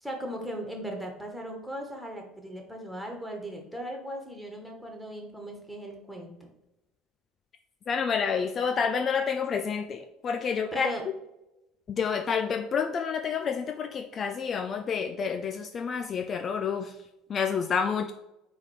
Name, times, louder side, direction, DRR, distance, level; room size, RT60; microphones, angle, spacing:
voice 1, 0.0-6.5 10.7-11.0, right 1 dB, 5° right, 1 dB, 1.7 m, -38 dB
voice 2, 7.9-10.9 11.9-17.0 17.3-18.1, left 6 dB, 40° left, 5 dB, 0.5 m, -29 dB
4.8 x 4.1 x 5.0 m, 0.93 s
hypercardioid pair, 65°, 0 cm